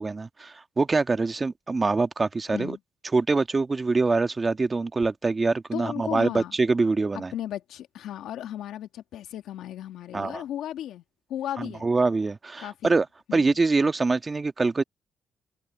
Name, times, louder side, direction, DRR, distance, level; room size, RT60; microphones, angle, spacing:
voice 1, 0.0-2.8 3.1-7.3 10.1-10.4 11.6-13.1 13.3-14.8, right 3 dB, 30° right, 1.6 m, -24 dB
voice 2, 5.7-6.5 7.3-11.0 11.3-11.9 12.6-12.9 13.3-13.5, left 11 dB, 85° left, 2.2 m, -35 dB
cardioid pair, 75°, 0 cm